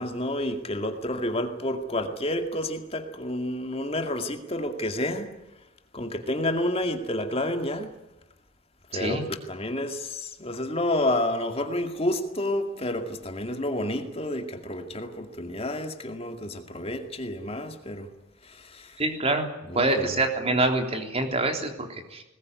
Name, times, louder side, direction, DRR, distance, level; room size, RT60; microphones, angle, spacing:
voice 1, 0.0-5.3 5.9-7.9 8.9-9.2 9.5-18.1 18.4-19.0 19.7-20.1, left 1 dB, 30° left, 6 dB, 2.2 m, -30 dB
voice 2, 8.9-9.2 19.0-19.5 19.7-22.2, right 2 dB, 30° right, 5 dB, 3.4 m, -26 dB
21.0 x 20.5 x 9.6 m, 0.97 s
head